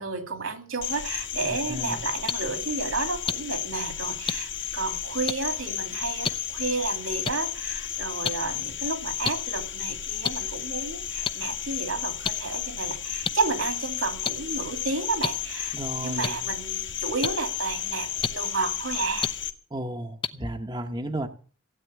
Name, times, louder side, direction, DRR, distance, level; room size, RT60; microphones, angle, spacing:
voice 1, 0.0-19.3, right 4 dB, 80° right, 6 dB, 2.8 m, -31 dB
Cricket, 0.8-19.5, left 10 dB, 60° left, 1.6 m, -33 dB
voice 2, 1.5-2.1 15.7-16.4 19.7-21.3, right 1 dB, 20° right, 5 dB, 1.0 m, -33 dB
sound 1, 2.3-2.4 3.3-3.4 4.3-4.4 5.3-5.4 6.2-6.3 7.2-7.3 8.2-8.3 9.2-9.3 10.2-10.3 11.2-11.3 12.2-12.3 13.2-13.3 14.2-14.3 15.2-15.3 16.2-16.3 17.2-17.3 18.2-18.3 19.2-19.3 20.2-20.3, left 6 dB, 25° left, 0.7 m, -26 dB
16.0 x 9.1 x 8.2 m, 0.42 s
head